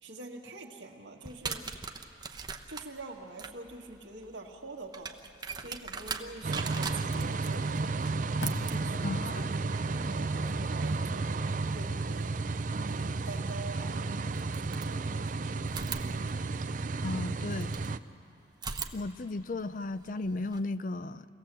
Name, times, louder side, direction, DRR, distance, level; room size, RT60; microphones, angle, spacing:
voice 1, 0.0-1.7 2.7-5.2 5.6-8.2 8.7-11.4 11.7-12.3 12.9-15.9, right 2 dB, 90° right, -1 dB, 1.8 m, -46 dB
sound 1, 1.2-12.0 13.5-13.6 14.3-15.3 15.7-17.9 18.5-20.6, right 5 dB, 25° right, 0.8 m, -42 dB
Packing tape duct tape, 5.0-6.7 7.4-7.5 7.8-10.8 11.2-11.4, left 1 dB, 75° left, 2.0 m, -45 dB
sound 2, 6.4-18.0, right 3 dB, 45° right, 0.5 m, -32 dB
voice 2, 9.0-9.6 17.0-17.7 18.9-21.3, left 2 dB, 45° left, 14 dB, 0.5 m, -35 dB
26.5 x 17.5 x 7.6 m, 2.9 s
head